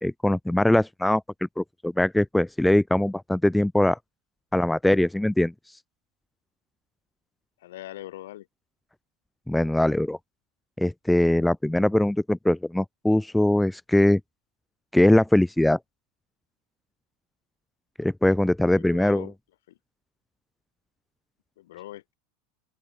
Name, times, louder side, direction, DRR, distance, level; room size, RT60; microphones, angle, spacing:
voice 1, 0.0-1.2 1.6-4.0 4.5-5.5 9.5-10.2 10.8-14.2 14.9-15.8 18.0-19.3, left 1 dB, 5° left, 1.0 m, -21 dB
voice 2, 7.6-8.5 18.7-19.3 19.7-19.8 21.6-22.1, left 15 dB, 70° left, 6.0 m, -41 dB
open air
hypercardioid pair, 85°, 0 cm